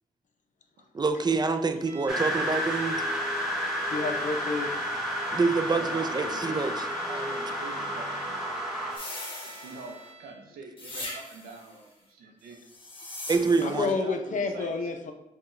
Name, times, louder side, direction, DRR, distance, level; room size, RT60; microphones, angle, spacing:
voice 1, 0.9-3.0 5.3-6.7 13.3-14.0, right 4 dB, 30° right, 7 dB, 0.4 m, -26 dB
sound 1, 1.8-10.5, right 5 dB, 45° right, 0.8 m, -46 dB
sound 2, 2.1-9.0, equal, 5° right, 0.9 m, -31 dB
voice 2, 3.9-4.7 13.6-15.1, left 4 dB, 55° left, 5 dB, 0.6 m, -29 dB
voice 3, 5.7-6.8 7.0-8.4 9.4-12.6 13.4-14.9, right 3 dB, 85° right, 2 dB, 0.5 m, -44 dB
sound 3, 8.9-10.1 10.8-11.6 12.6-13.9, left 1 dB, 35° left, 1.1 m, -40 dB
4.5 x 2.3 x 3.1 m, 0.87 s
supercardioid pair, 45°, 15 cm